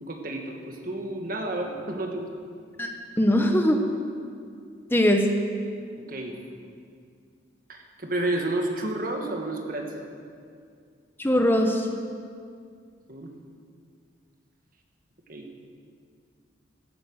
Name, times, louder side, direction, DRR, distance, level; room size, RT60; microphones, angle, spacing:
voice 1, 0.0-2.3 6.0-6.4 7.7-10.1 13.1-13.4 15.3-15.5, right 1 dB, 50° right, 2 dB, 1.6 m, -31 dB
voice 2, 3.2-3.8 4.9-5.3 11.2-11.9, equal, 10° left, 4 dB, 0.8 m, -21 dB
15.5 x 9.7 x 6.4 m, 2.2 s
head